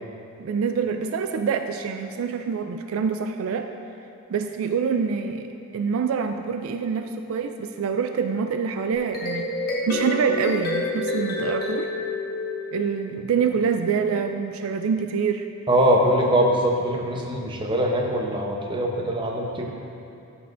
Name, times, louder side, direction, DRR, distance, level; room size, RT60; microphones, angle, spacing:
voice 1, 0.4-3.7 4.3-5.5 5.7-9.5 9.9-11.9 12.7-15.5, right 6 dB, 70° right, 7 dB, 0.3 m, -26 dB
sound 1, 8.9-13.3, left 2 dB, 45° left, 1.2 m, -28 dB
voice 2, 15.7-19.7, right 1 dB, 20° right, 0 dB, 0.7 m, -22 dB
13.5 x 5.7 x 2.5 m, 2.7 s
head